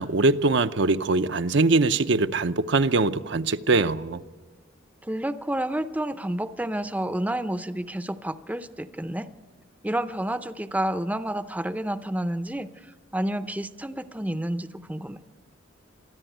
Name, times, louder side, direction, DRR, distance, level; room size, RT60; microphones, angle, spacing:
voice 1, 0.0-4.2, right 3 dB, 65° right, 0.7 m, -22 dB
voice 2, 5.0-9.3 9.8-15.2, right 1 dB, 10° right, 0.6 m, -30 dB
24.5 x 14.0 x 9.2 m
head